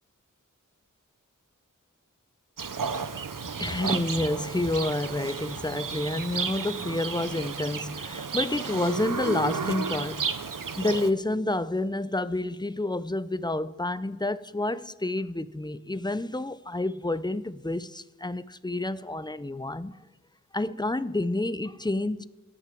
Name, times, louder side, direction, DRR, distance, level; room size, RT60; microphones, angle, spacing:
Livestock farm animals working animals, 2.6-11.1, right 5 dB, 85° right, 0.8 m, -33 dB
voice 1, 3.6-10.3 10.8-20.0 20.5-22.2, left 2 dB, 15° left, 0.6 m, -29 dB
17.0 x 10.5 x 7.6 m
wide cardioid pair, 55°, 32 cm